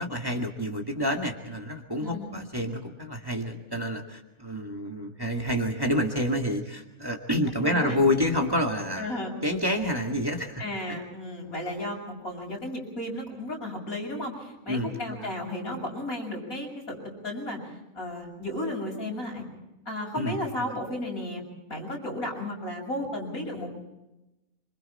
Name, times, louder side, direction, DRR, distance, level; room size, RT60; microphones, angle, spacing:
voice 1, 0.0-10.6 10.9-11.0 14.7-15.3 20.2-20.7, left 1 dB, 15° right, 1 dB, 2.2 m, -28 dB
voice 2, 2.0-2.3 7.6-8.0 9.0-9.4 10.6-17.6 17.9-19.4 19.9-21.4 21.7-23.7, left 1 dB, 80° left, 0 dB, 7.2 m, -34 dB
26.5 x 25.5 x 4.4 m, 0.96 s
omnidirectional pair, 1.5 m